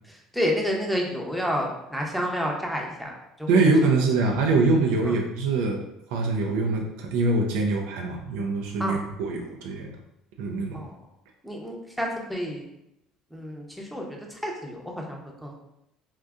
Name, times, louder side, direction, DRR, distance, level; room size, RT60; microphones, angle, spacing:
voice 1, 0.3-3.6 5.0-5.2 8.8-9.0 10.7-11.0 11.4-12.6 13.3-15.5, equal, ahead, -1 dB, 0.6 m, -30 dB
voice 2, 3.5-5.8 6.1-9.9 10.4-10.8, right 3 dB, 85° right, 1 dB, 0.4 m, -23 dB
3.6 x 2.6 x 2.3 m, 0.85 s
cardioid pair, 125°, 0 cm